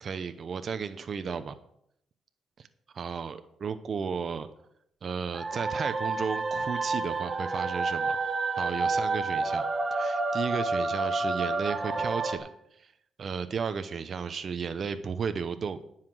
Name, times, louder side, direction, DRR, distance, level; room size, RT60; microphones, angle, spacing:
voice 1, 0.0-1.6 2.6-2.7 2.9-4.5 5.0-8.2 8.6-9.7 9.9-12.5 12.8-12.9 13.2-15.8, right 6 dB, 50° right, 10 dB, 0.8 m, -34 dB
sound 1, 5.3-12.4, right 3 dB, 30° right, 1.2 m, -29 dB
9.9 x 5.8 x 7.7 m, 0.73 s
cardioid pair, 90°, 0 cm